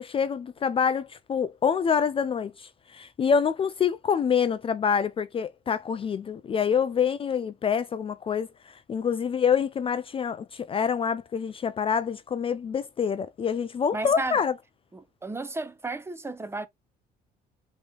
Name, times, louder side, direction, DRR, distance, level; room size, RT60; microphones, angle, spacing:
voice 1, 0.0-14.6, left 7 dB, 35° left, 0.4 m, -26 dB
voice 2, 13.9-14.4 14.9-16.7, right 2 dB, 15° right, 0.7 m, -33 dB
5.1 x 3.0 x 3.4 m
cardioid pair, 110°, 17 cm